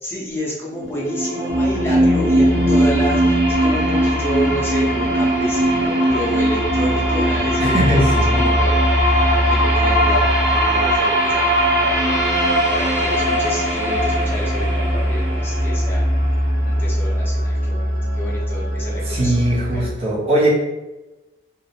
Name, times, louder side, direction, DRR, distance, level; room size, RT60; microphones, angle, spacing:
voice 1, 0.0-8.9 9.5-12.2 12.7-16.1 16.6-19.9, equal, 10° left, -6 dB, 0.6 m, -29 dB
sound 1, 0.8-16.7, equal, 65° right, 0.9 m, -20 dB
sound 2, 1.0-19.9, equal, 65° left, 0.6 m, -38 dB
sound 3, 1.5-19.9, equal, 10° right, 0.9 m, -24 dB
voice 2, 7.6-8.3 19.1-20.5, right 1 dB, 30° right, -5 dB, 0.6 m, -19 dB
2.5 x 2.0 x 2.8 m, 1.1 s
head